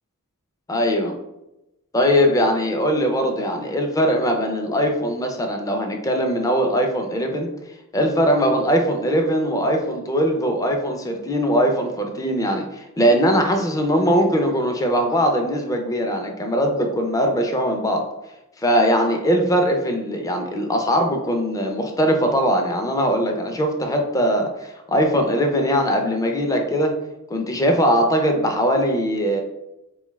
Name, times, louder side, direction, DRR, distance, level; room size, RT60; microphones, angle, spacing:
voice 1, 0.7-1.1 1.9-7.5 7.9-18.0 18.6-26.9 27.3-29.4, equal, 15° left, 3 dB, 0.4 m, -21 dB
3.9 x 2.3 x 3.0 m, 0.92 s
head